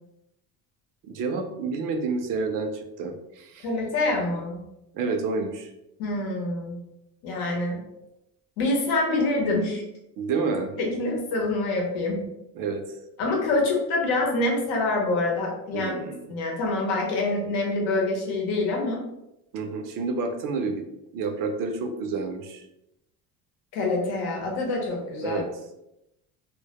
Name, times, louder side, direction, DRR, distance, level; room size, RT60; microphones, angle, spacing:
voice 1, 1.1-3.7 4.9-5.7 10.2-10.7 12.5-12.8 15.7-16.2 19.5-20.8 21.1-22.6 25.2-25.5, right 4 dB, 60° right, 5 dB, 0.5 m, -29 dB
voice 2, 3.6-4.6 6.0-6.8 7.2-7.8 8.6-9.8 10.8-12.2 13.2-16.0 16.3-19.0 23.7-25.4, left 2 dB, 90° left, -1 dB, 0.8 m, -26 dB
2.1 x 2.1 x 2.8 m, 0.86 s
cardioid pair, 110°, 38 cm